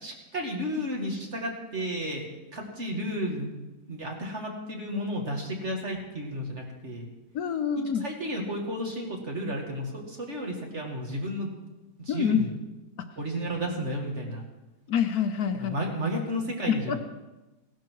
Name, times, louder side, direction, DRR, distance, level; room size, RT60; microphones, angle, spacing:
voice 1, 0.0-3.5 3.9-7.1 8.0-11.5 12.0-12.5 13.2-14.5 15.6-17.0, equal, 40° right, 1 dB, 2.5 m, -32 dB
voice 2, 7.3-8.0 12.1-12.4 14.9-15.8 16.7-17.0, left 7 dB, 65° left, 8 dB, 1.3 m, -26 dB
16.5 x 12.0 x 4.7 m, 1.1 s
omnidirectional pair, 1.8 m